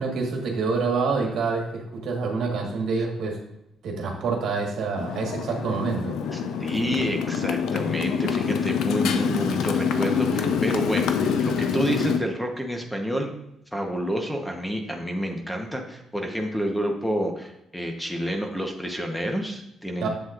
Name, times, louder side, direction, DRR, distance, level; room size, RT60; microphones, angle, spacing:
voice 1, 0.0-3.4 3.8-6.2 20.0-20.1, right 4 dB, 75° right, 0 dB, 1.5 m, -27 dB
Motorcycle, 5.0-12.2, left 6 dB, 80° left, 0.5 m, -26 dB
voice 2, 6.3-13.3 13.7-20.1, equal, ahead, 3 dB, 1.0 m, -29 dB
7.6 x 7.2 x 2.5 m, 0.82 s
cardioid pair, 90°, 0 cm